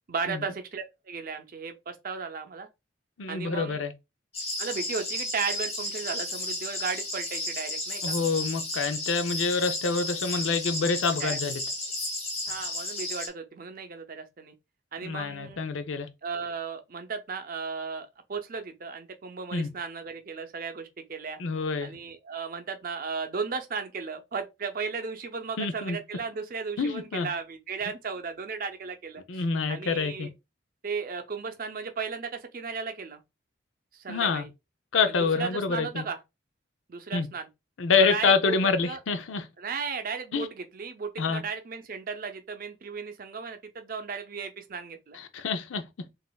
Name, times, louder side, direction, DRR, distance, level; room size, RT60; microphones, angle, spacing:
voice 1, 0.1-2.7 3.3-3.8 4.6-8.1 11.2-11.4 12.5-14.5 14.9-15.7 16.2-21.4 21.8-30.3 30.8-33.2 33.9-34.5 35.1-36.2 36.9-37.5 38.0-38.6 38.8-39.0 39.6-45.2, right 5 dB, 45° right, 0.5 m, -35 dB
voice 2, 3.2-3.9 8.0-11.6 15.0-16.1 19.5-19.7 21.4-21.9 25.6-26.0 26.8-27.3 29.3-30.3 34.1-34.5 34.9-36.0 37.1-37.3 37.8-39.4 40.3-40.5 41.2-41.4 45.1-45.8, left 4 dB, 85° left, 0.5 m, -27 dB
sound 1, 4.3-13.3, left 1 dB, 30° left, 0.9 m, -33 dB
4.0 x 2.5 x 2.2 m
head